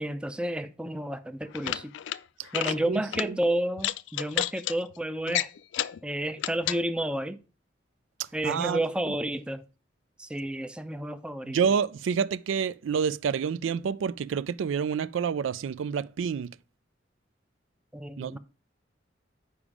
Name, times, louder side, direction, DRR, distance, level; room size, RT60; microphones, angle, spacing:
voice 1, 0.0-1.9 2.5-5.5 6.0-7.4 8.3-9.6 10.2-11.6 17.9-18.4, right 1 dB, 5° right, 0.4 m, -31 dB
sound 1, 1.4-2.2 2.5-2.8 3.1-3.3 3.8-4.7 5.3-6.0 6.4-6.8, left 12 dB, 75° left, 0.3 m, -30 dB
voice 2, 8.4-8.8 11.5-16.5 18.2-18.4, right 6 dB, 90° right, 0.3 m, -28 dB
7.0 x 4.9 x 4.8 m
head